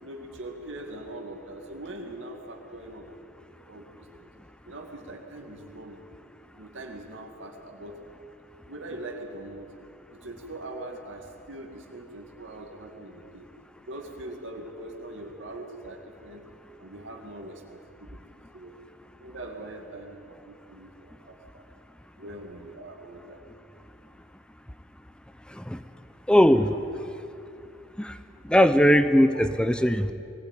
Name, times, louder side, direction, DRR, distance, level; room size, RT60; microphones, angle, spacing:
voice 1, 0.0-3.2 3.7-4.3 4.6-6.0 6.6-8.0 8.7-9.7 10.1-13.5 13.9-16.4 16.8-18.2 18.5-18.7 19.2-21.6 22.2-23.4 29.3-29.5, right 1 dB, 90° right, 2 dB, 2.3 m, -42 dB
voice 2, 25.5-25.8 26.3-26.8 28.0-28.2 28.4-30.1, equal, 5° left, 11 dB, 0.6 m, -20 dB
20.5 x 16.0 x 9.1 m, 2.7 s
head